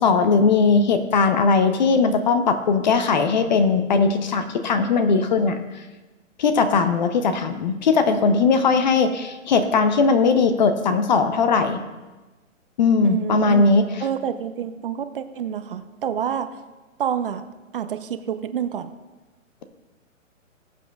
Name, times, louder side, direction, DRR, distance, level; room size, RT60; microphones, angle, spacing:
voice 1, 0.0-5.6 6.4-11.8 12.8-13.9, left 4 dB, 35° left, 9 dB, 0.7 m, -19 dB
voice 2, 13.0-13.7 14.0-16.6 17.0-17.4 17.7-18.9, right 8 dB, 45° right, 10 dB, 0.6 m, -28 dB
20.5 x 7.7 x 2.3 m, 1.2 s
hypercardioid pair, 150°, 39 cm